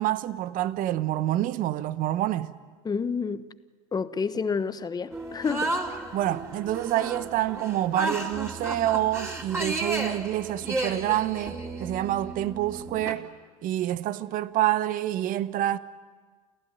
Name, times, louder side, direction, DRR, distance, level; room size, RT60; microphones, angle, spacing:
voice 1, 0.0-2.5 6.1-13.3 13.6-15.8, right 13 dB, 50° right, 1.2 m, -27 dB
voice 2, 2.8-3.5 3.9-5.8, left 5 dB, 20° left, 1.2 m, -29 dB
sound 1, 5.1-13.1, right 2 dB, 15° right, 4.0 m, -33 dB
29.5 x 15.0 x 9.5 m
hypercardioid pair, 80°, 18 cm